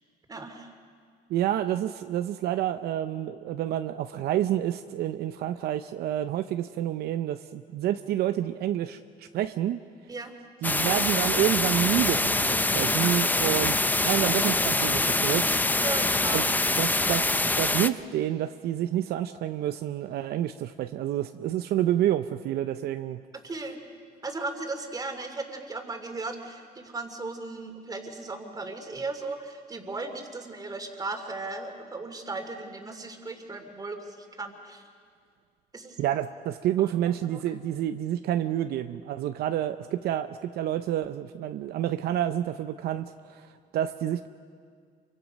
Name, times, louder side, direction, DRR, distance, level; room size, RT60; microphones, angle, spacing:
voice 1, 0.3-0.7 10.1-10.3 15.8-16.5 17.0-17.2 23.3-23.8 24.2-34.9 35.7-36.0 36.8-37.4, right 3 dB, 20° right, 5 dB, 2.7 m, -37 dB
voice 2, 1.3-9.8 10.6-15.8 16.3-16.5 16.8-17.3 17.6-23.2 36.0-44.3, right 12 dB, 70° right, 9 dB, 0.7 m, -28 dB
sound 1, 10.6-17.9, left 2 dB, 10° left, 0.6 m, -25 dB
28.0 x 24.0 x 5.4 m, 2.1 s
cardioid pair, 110°, 17 cm